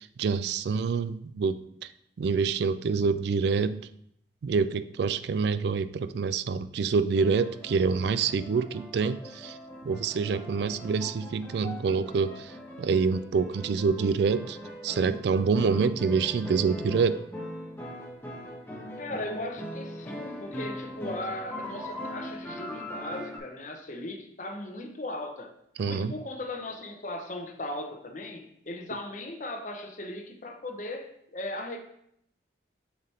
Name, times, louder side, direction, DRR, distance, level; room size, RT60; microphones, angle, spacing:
voice 1, 0.0-1.9 2.2-3.9 4.4-9.6 9.8-12.5 12.8-14.6 14.8-17.2 25.8-26.2, right 5 dB, 60° right, 13 dB, 0.3 m, -26 dB
sound 1, 7.1-23.4, equal, 10° left, 1.2 m, -40 dB
voice 2, 19.0-25.5 25.8-31.8, left 1 dB, 40° left, 4 dB, 0.8 m, -37 dB
7.6 x 3.5 x 4.2 m, 0.73 s
head